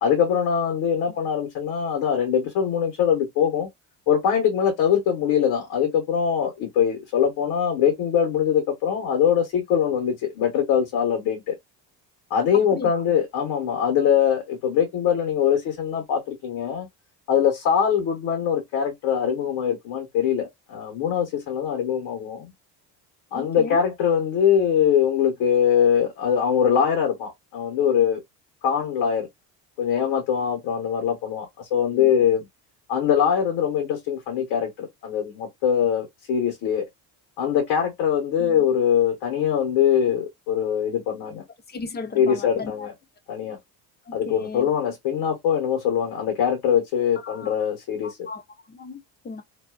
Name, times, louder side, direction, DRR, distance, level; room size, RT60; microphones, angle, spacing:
voice 1, 0.0-3.7 4.1-11.5 12.3-16.9 17.3-22.5 23.3-28.2 28.6-29.3 29.8-32.5 32.9-36.8 37.4-41.4 42.1-42.9 43.3-43.6 44.1-48.2, left 8 dB, 80° left, 1.2 m, -22 dB
voice 2, 12.7-13.0 23.3-23.8 31.9-32.3 38.4-38.6 41.7-42.9 44.1-44.7 47.2-47.5 48.0-49.4, left 4 dB, 25° left, 0.6 m, -36 dB
2.6 x 2.3 x 2.3 m
cardioid pair, 115°, 40 cm